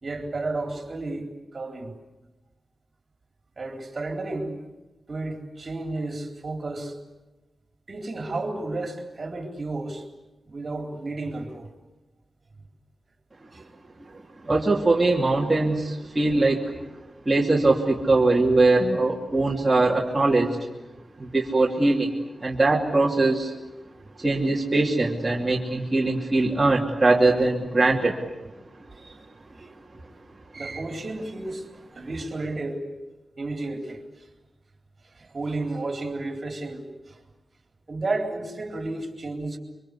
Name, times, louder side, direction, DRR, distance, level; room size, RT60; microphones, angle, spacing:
voice 1, 0.0-1.9 3.6-4.6 5.1-7.0 7.9-10.0 10.5-11.7 13.5-13.6 28.9-29.2 29.6-29.7 30.5-31.7 31.9-32.9 33.4-34.0 35.0-37.2 37.9-39.6, right 2 dB, 45° right, 3 dB, 3.9 m, -32 dB
voice 2, 14.4-16.6 17.2-20.6 21.2-22.1 22.4-23.5 24.2-28.1, right 2 dB, 20° right, -3 dB, 2.8 m, -21 dB
26.5 x 24.5 x 8.4 m, 1.1 s
wide cardioid pair, 110°, 0 cm